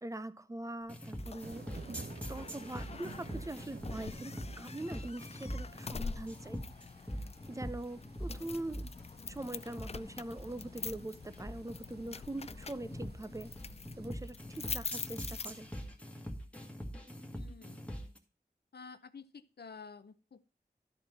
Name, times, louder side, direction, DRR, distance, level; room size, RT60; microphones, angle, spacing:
voice 1, 0.0-6.6 7.5-8.9 9.3-13.5 14.0-15.7, right 1 dB, 20° right, 13 dB, 0.6 m, -43 dB
sound 1, 0.9-18.2, equal, 10° left, 1.8 m, -43 dB
sound 2, 1.0-16.0, left 5 dB, 40° left, 0.3 m, -46 dB
sound 3, 1.4-14.1, right 4 dB, 85° right, 0.8 m, -54 dB
voice 2, 17.3-17.8 18.7-20.5, left 5 dB, 80° left, 13 dB, 0.7 m, -51 dB
12.0 x 4.3 x 5.4 m, 0.38 s
wide cardioid pair, 65°, 16 cm